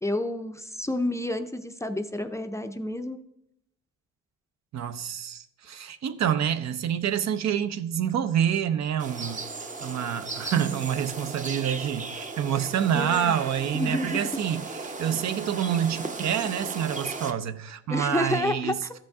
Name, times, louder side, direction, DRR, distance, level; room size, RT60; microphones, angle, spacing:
voice 1, 0.0-3.2 12.9-13.3 13.7-14.2 17.9-18.9, left 1 dB, 10° left, 0.5 m, -29 dB
voice 2, 4.7-9.4 9.8-18.8, right 9 dB, 60° right, 0.7 m, -27 dB
sound 1, 9.0-17.3, right 3 dB, 25° right, 0.7 m, -36 dB
13.5 x 5.2 x 3.5 m
cardioid pair, 90°, 30 cm